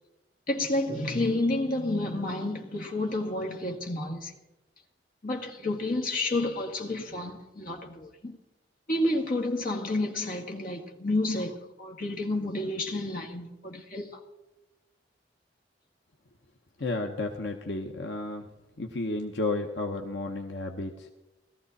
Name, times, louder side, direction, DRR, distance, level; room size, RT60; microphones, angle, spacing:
voice 1, 0.5-4.3 5.2-8.4 8.9-14.2, left 2 dB, 50° left, 2.1 m, -30 dB
voice 2, 16.8-18.5 18.8-21.1, left 2 dB, 75° left, 1.0 m, -32 dB
18.5 x 14.0 x 4.2 m
head